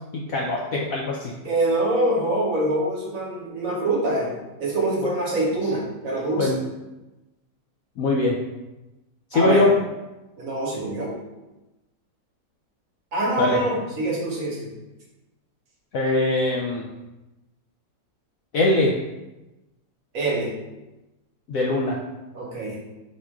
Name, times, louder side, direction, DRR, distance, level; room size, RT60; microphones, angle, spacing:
voice 1, 0.1-1.3 6.4-6.6 8.0-8.4 9.3-9.7 13.4-13.6 15.9-16.9 18.5-18.9 21.5-22.0, left 2 dB, 75° left, -2 dB, 0.8 m, -22 dB
voice 2, 1.4-4.3 4.6-6.5 9.3-9.7 10.4-11.1 13.1-14.6 20.1-20.5 22.3-22.7, right 2 dB, 55° right, -3 dB, 1.2 m, -24 dB
4.3 x 2.4 x 4.6 m, 1.0 s
omnidirectional pair, 1.9 m